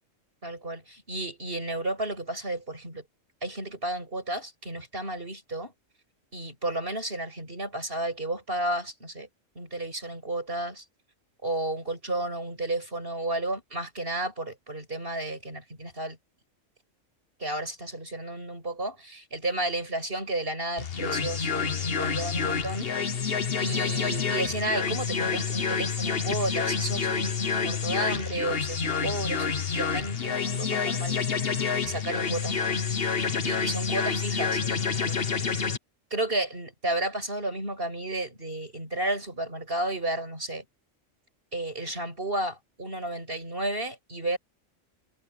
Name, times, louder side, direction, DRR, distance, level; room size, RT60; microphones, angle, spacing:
voice 1, 0.4-3.0 3.4-5.7 6.3-9.3 9.5-10.8 11.4-16.2 17.4-22.9 23.6-31.2 31.8-33.0 33.4-35.6 36.1-40.6 41.5-44.4, right 1 dB, 45° right, 7.8 m, -32 dB
sound 1, 20.8-35.8, left 5 dB, 50° left, 1.4 m, -28 dB
omnidirectional pair, 1.3 m